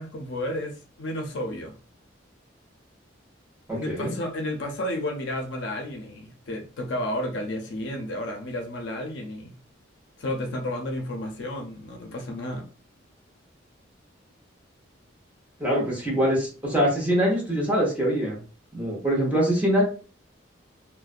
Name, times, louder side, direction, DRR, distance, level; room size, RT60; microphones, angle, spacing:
voice 1, 0.0-1.7 3.7-9.5 10.2-12.7, left 1 dB, 65° left, 2 dB, 0.5 m, -32 dB
voice 2, 3.7-4.1 15.6-18.4 18.7-19.8, equal, 10° right, -4 dB, 0.9 m, -23 dB
2.4 x 2.1 x 2.4 m, 0.37 s
head